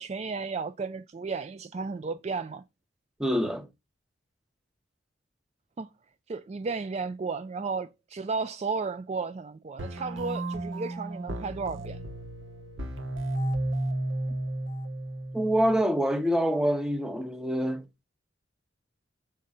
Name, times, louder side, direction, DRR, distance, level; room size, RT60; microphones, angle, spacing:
voice 1, 0.0-2.6 5.8-5.9 6.3-12.0, right 4 dB, 35° right, 0.3 m, -33 dB
voice 2, 3.2-3.7 15.3-17.8, equal, 5° right, 0.9 m, -26 dB
sound 1, 9.8-15.8, right 1 dB, 75° right, 1.5 m, -33 dB
6.7 x 3.7 x 5.3 m
head